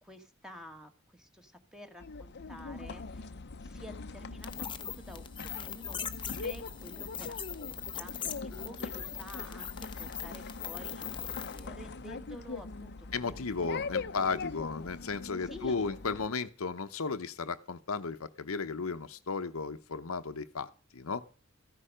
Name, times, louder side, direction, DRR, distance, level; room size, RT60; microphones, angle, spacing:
voice 1, 0.0-3.3 3.6-13.3 13.6-14.0 15.4-15.9, equal, 5° right, 6 dB, 1.6 m, -50 dB
sound 1, 2.0-16.3, left 4 dB, 55° left, 0.7 m, -42 dB
sound 2, 4.4-11.7, left 8 dB, 25° left, 0.9 m, -41 dB
voice 2, 13.1-21.2, left 4 dB, 85° left, 10 dB, 0.9 m, -35 dB
14.5 x 10.0 x 5.0 m, 0.38 s
head